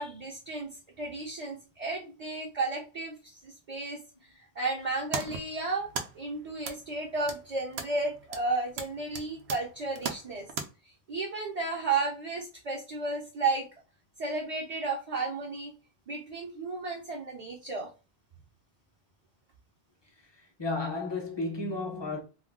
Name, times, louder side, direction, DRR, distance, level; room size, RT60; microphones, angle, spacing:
voice 1, 0.0-4.0 4.6-10.5 11.1-13.7 14.2-15.7 16.1-17.9, right 3 dB, 45° right, 0.6 m, -33 dB
sound 1, 4.8-10.7, right 5 dB, 80° right, 0.8 m, -40 dB
voice 2, 20.3-22.2, left 3 dB, 30° left, 0.6 m, -33 dB
2.4 x 2.2 x 3.4 m
omnidirectional pair, 1.0 m